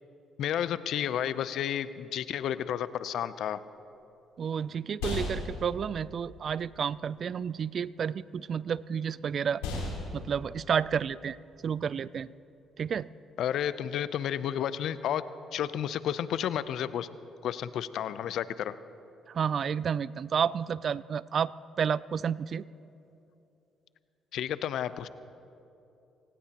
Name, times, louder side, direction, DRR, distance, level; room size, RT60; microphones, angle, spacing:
voice 1, 0.4-3.6 13.4-15.2 15.5-17.1 17.4-18.8 24.3-25.1, left 10 dB, 70° left, 15 dB, 0.5 m, -31 dB
sound 1, 3.7-13.3, left 3 dB, 85° left, 3.5 m, -40 dB
voice 2, 4.4-9.6 10.1-11.4 11.6-12.3 12.8-13.1 19.3-21.5 21.8-22.6, right 7 dB, 55° right, 20 dB, 0.3 m, -30 dB
25.5 x 18.5 x 2.9 m, 2.8 s
hypercardioid pair, 50°, 0 cm